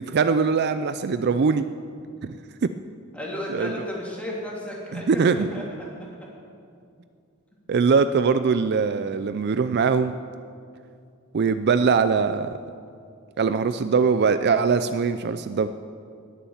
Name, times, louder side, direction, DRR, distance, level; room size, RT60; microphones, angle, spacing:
voice 1, 0.0-1.7 2.2-2.3 2.6-2.7 3.5-3.7 4.9-5.6 7.7-10.1 11.3-12.6 13.4-15.7, right 5 dB, 50° right, 11 dB, 0.4 m, -22 dB
voice 2, 3.1-5.6, left 1 dB, 5° left, -4 dB, 3.0 m, -33 dB
20.0 x 7.1 x 7.2 m, 2.4 s
head